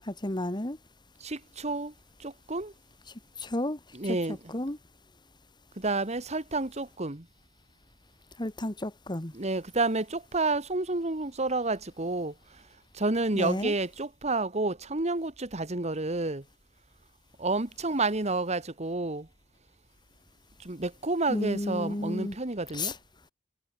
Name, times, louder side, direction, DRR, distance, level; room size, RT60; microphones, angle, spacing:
voice 1, 0.1-0.8 3.4-3.8 4.1-4.2 4.5-4.8 8.4-9.3 13.3-13.7 21.3-22.4 22.7-22.9, left 1 dB, 25° left, 1.9 m, -32 dB
voice 2, 1.2-1.9 2.2-2.7 3.9-4.4 5.8-7.2 9.3-12.3 13.0-16.4 17.4-19.3 20.7-22.9, right 2 dB, 35° right, 1.9 m, -30 dB
head